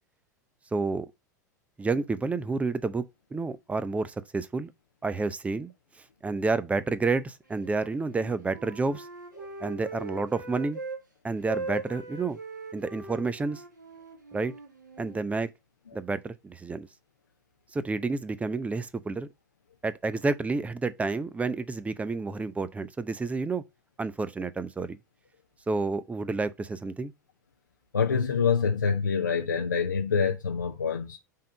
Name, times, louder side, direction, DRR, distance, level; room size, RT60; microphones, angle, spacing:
voice 1, 0.7-1.1 1.8-3.0 3.3-4.7 5.0-5.7 6.2-9.1 9.6-10.8 11.2-12.4 12.7-13.6 14.3-14.5 15.0-15.5 15.9-16.9 17.7-19.3 19.8-23.6 24.0-25.0 25.7-27.1, right 3 dB, 15° right, 0.6 m, -30 dB
Wind instrument woodwind instrument, 7.6-11.0 11.3-15.2, right 3 dB, 85° right, 1.9 m, -40 dB
voice 2, 27.9-31.2, left 6 dB, 85° left, 0.6 m, -26 dB
5.6 x 3.7 x 5.1 m
figure-of-eight pair, 85°, 10 cm